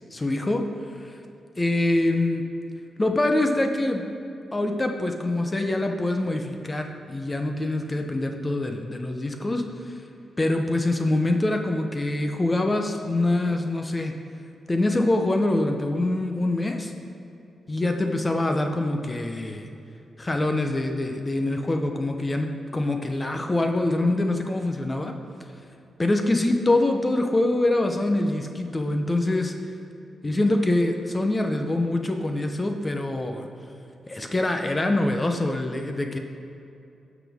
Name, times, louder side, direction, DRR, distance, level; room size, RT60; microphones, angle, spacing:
voice 1, 0.1-0.6 1.0-1.1 1.6-2.4 3.0-4.0 4.5-9.6 10.4-14.1 14.7-16.9 17.7-19.7 20.2-25.1 26.0-29.5 30.2-33.5 34.1-36.2, left 2 dB, 20° left, 4 dB, 0.8 m, -24 dB
16.0 x 6.0 x 3.6 m, 2.7 s
cardioid pair, 95°, 0 cm